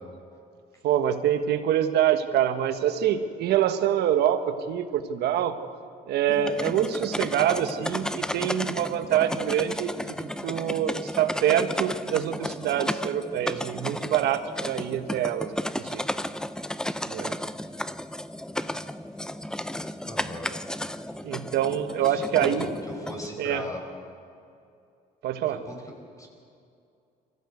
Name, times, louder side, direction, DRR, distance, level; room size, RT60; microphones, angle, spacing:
voice 1, 0.8-5.6 6.1-10.1 10.4-16.0 17.1-17.3 21.2-22.7 23.4-23.6 25.2-25.6, right 10 dB, 75° right, 9 dB, 1.4 m, -25 dB
Insect wings, 6.3-23.3, left 1 dB, 5° left, 0.5 m, -33 dB
voice 2, 20.1-20.5 22.0-22.7 23.0-23.8 25.5-26.3, left 1 dB, 20° left, 2 dB, 5.1 m, -38 dB
24.0 x 15.0 x 8.0 m, 2.5 s
cardioid pair, 110°, 17 cm